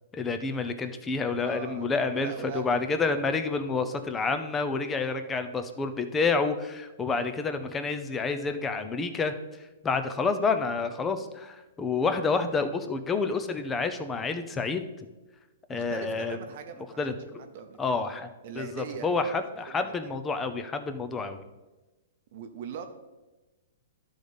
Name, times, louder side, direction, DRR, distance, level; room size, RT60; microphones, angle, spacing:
voice 1, 0.1-9.3 9.8-14.8 15.7-16.4 17.0-17.1 17.8-18.3 18.6-21.4, left 4 dB, 10° left, 8 dB, 0.5 m, -29 dB
voice 2, 1.3-2.9 15.7-17.0 17.3-18.0 18.4-19.3 19.7-19.9 22.3-22.8, right 7 dB, 50° right, 6 dB, 0.7 m, -41 dB
11.5 x 4.0 x 5.0 m, 1.1 s
hypercardioid pair, 160°, 0 cm